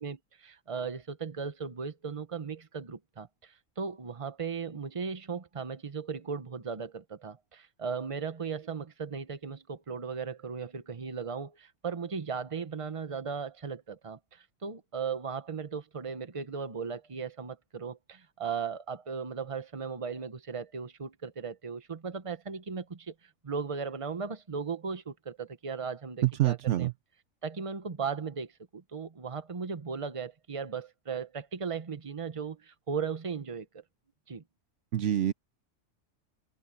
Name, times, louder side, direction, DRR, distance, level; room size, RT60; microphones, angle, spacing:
voice 1, 0.0-23.1 23.4-26.9 27.4-33.8 34.3-34.4, right 5 dB, 25° right, 1.0 m, -37 dB
voice 2, 26.2-26.9 34.9-35.3, right 13 dB, 70° right, 0.9 m, -26 dB
omnidirectional pair, 1.4 m